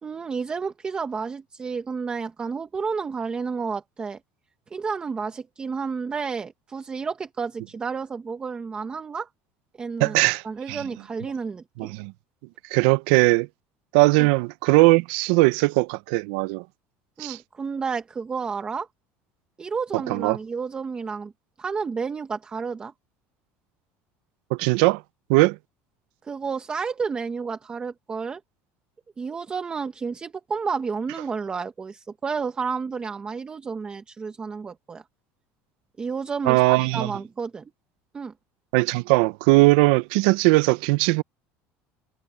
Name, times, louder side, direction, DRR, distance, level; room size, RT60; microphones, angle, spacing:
voice 1, 0.0-4.2 4.7-9.3 9.8-10.1 10.4-11.9 14.2-14.3 17.2-18.9 19.6-21.3 21.6-22.9 26.2-28.4 29.2-35.0 36.0-37.7 38.1-38.3, right 5 dB, 20° right, 0.9 m, -31 dB
voice 2, 10.0-10.8 11.8-12.1 12.7-13.5 13.9-16.6 17.2-17.4 20.1-20.4 24.5-25.0 25.3-25.6 36.5-37.1 38.7-41.2, right 23 dB, 90° right, 0.5 m, -19 dB
cardioid pair, 160°, 5 cm